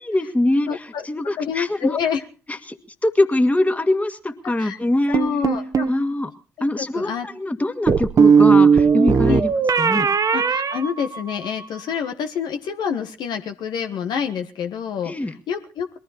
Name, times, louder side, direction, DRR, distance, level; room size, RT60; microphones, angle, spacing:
voice 1, 0.1-2.0 2.5-5.2 5.9-6.3 6.6-9.5 9.8-10.1 15.1-15.3, left 1 dB, 20° left, 7 dB, 2.2 m, -23 dB
voice 2, 0.7-1.0 1.4-2.2 4.6-4.8 5.1-5.9 6.6-7.2 9.3-9.4 10.3-15.1 15.5-16.0, left 7 dB, 65° left, 6 dB, 1.6 m, -27 dB
sound 1, 5.1-6.0 7.9-11.6, right 6 dB, 45° right, 1.5 m, -17 dB
21.5 x 14.0 x 4.3 m, 0.37 s
figure-of-eight pair, 40°, 8 cm